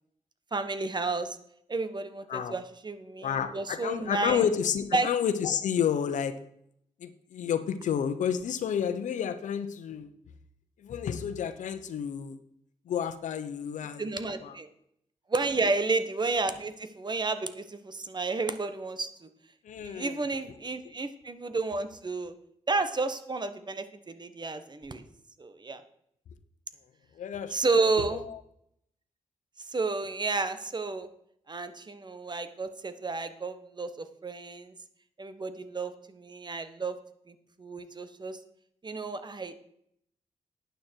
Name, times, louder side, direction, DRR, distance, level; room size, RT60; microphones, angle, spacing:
voice 1, 0.5-1.4 1.7-4.4 4.9-5.1 14.0-14.7 15.3-19.3 19.8-22.3 22.7-25.0 25.4-25.8 27.5-28.2 29.7-31.1 31.5-34.7 35.2-37.0 37.3-38.4 38.8-39.5, right 3 dB, 35° right, 10 dB, 1.3 m, -31 dB
voice 2, 3.2-6.3 7.0-10.1 10.8-12.4 12.9-14.1 14.4-14.6 19.6-20.2 27.2-27.9 28.3-28.4, left 8 dB, 85° left, 10 dB, 1.0 m, -30 dB
11.5 x 9.2 x 4.6 m, 0.72 s
cardioid pair, 65°, 12 cm